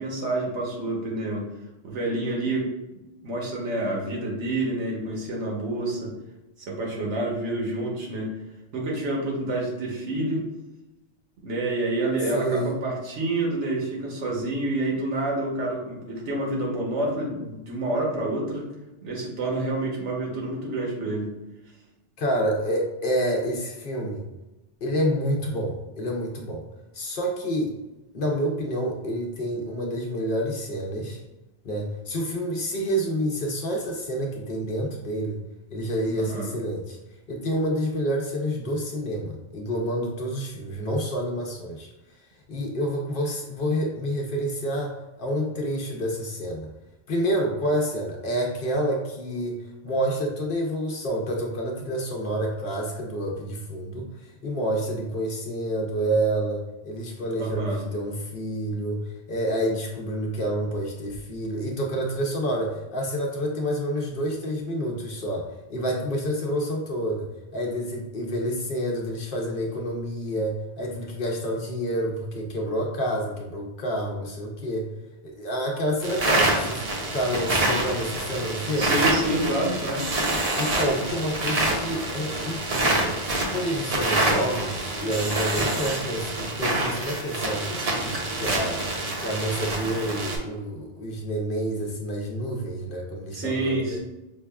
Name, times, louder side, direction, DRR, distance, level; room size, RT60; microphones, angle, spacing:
voice 1, 0.0-1.5 1.8-2.7 3.2-6.1 6.6-8.3 8.7-10.4 11.4-18.7 19.0-21.3 36.1-36.5 57.4-57.8 78.8-80.0 93.3-94.0, right 2 dB, 80° right, -2 dB, 1.2 m, -28 dB
voice 2, 12.3-12.8 22.2-24.3 24.8-26.6 26.9-27.7 28.1-31.2 31.6-35.4 35.7-37.0 37.3-41.9 42.5-46.7 47.1-74.9 75.2-76.8 77.1-79.0 80.6-83.2 83.5-88.8 89.2-94.0, equal, 55° left, -1 dB, 0.7 m, -28 dB
sound 1, 76.0-90.4, right 2 dB, 40° right, 0.6 m, -26 dB
5.3 x 2.2 x 2.2 m, 1.0 s
omnidirectional pair, 1.2 m